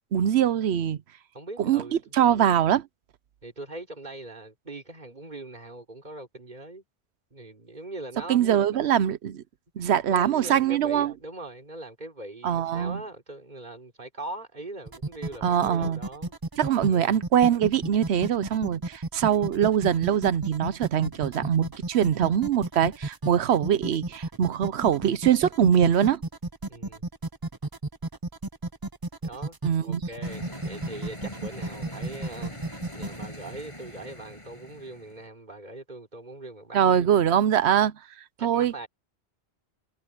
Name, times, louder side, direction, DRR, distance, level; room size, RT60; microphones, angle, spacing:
voice 1, 0.1-1.0 1.6-1.8 2.1-2.9 8.3-9.4 9.8-11.1 12.4-13.0 15.4-16.0 16.6-26.2 29.6-30.0 36.7-37.9 38.4-38.7, right 9 dB, 75° right, 1.0 m, -23 dB
voice 2, 1.3-1.9 3.4-6.8 7.3-8.4 8.7-8.9 9.8-16.3 16.9-17.2 19.3-19.5 26.7-27.0 29.2-32.6 32.9-36.8 38.4-38.9, right 2 dB, 45° right, 3.7 m, -41 dB
sound 1, 14.9-33.3, right 2 dB, 25° right, 0.7 m, -33 dB
sound 2, 30.2-35.2, left 1 dB, 30° left, 8.1 m, -41 dB
omnidirectional pair, 1.1 m